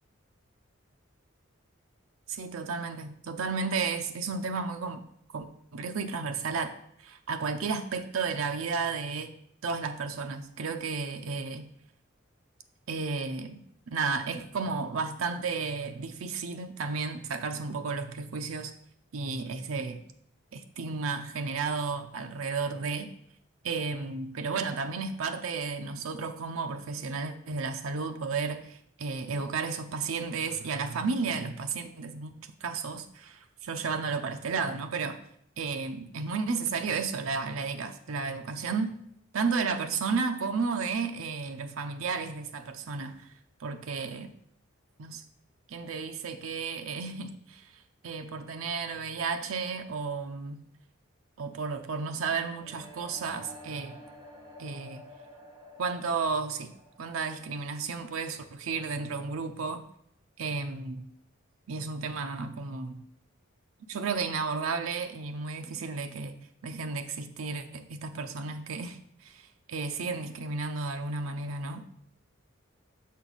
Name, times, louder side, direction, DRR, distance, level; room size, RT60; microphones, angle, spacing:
voice 1, 2.3-5.0 5.3-6.7 7.0-9.3 9.6-11.7 12.9-13.6 13.9-18.7 19.1-20.0 20.5-23.1 23.6-35.2 35.6-38.9 39.3-43.3 43.6-44.3 45.0-45.2 45.7-50.6 51.4-54.0 54.6-55.0 55.8-56.7 57.0-59.8 60.4-61.1 61.7-63.0 63.9-71.8, right 4 dB, 85° right, 6 dB, 0.6 m, -33 dB
sound 1, 52.6-58.5, equal, 20° right, 1.2 m, -51 dB
6.4 x 5.9 x 4.0 m, 0.69 s
head